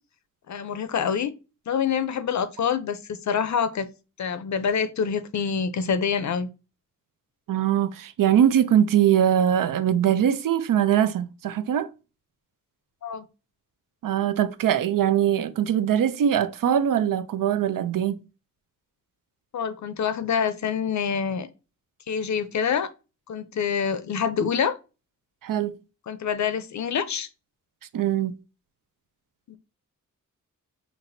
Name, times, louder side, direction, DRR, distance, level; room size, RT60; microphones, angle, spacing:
voice 1, 0.5-1.3 1.7-3.9 4.2-6.5 13.0-13.3 19.5-21.5 22.1-22.9 23.3-24.8 26.1-27.3 29.5-29.6, left 7 dB, 60° left, 0.5 m, -26 dB
voice 2, 7.5-11.9 14.0-18.2 25.4-25.7 27.9-28.4, right 10 dB, 85° right, 0.5 m, -22 dB
5.9 x 3.0 x 2.6 m
wide cardioid pair, 165°, 32 cm